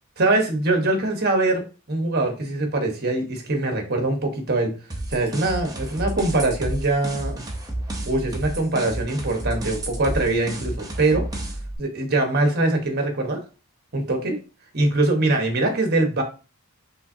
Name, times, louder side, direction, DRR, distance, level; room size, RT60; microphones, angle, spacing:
voice 1, 0.2-1.6 1.9-4.7 5.1-7.4 8.1-11.2 11.8-13.4 13.9-14.4 14.7-16.2, right 2 dB, 45° right, 3 dB, 1.2 m, -22 dB
sound 1, 4.9-11.8, right 1 dB, 15° right, 0.8 m, -31 dB
5.5 x 3.3 x 2.7 m, 0.33 s
head